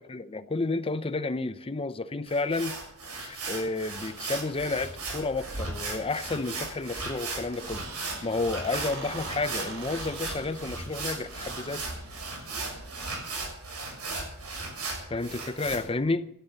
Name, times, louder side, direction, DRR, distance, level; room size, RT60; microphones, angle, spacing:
voice 1, 0.1-2.8 3.1-11.8 15.1-16.3, left 3 dB, 25° left, 0.7 m, -31 dB
sound 1, 2.3-15.8, right 3 dB, 85° right, 7.0 m, -36 dB
Squeak, 7.3-13.1, right 2 dB, 60° right, 3.8 m, -44 dB
14.0 x 12.5 x 6.8 m
head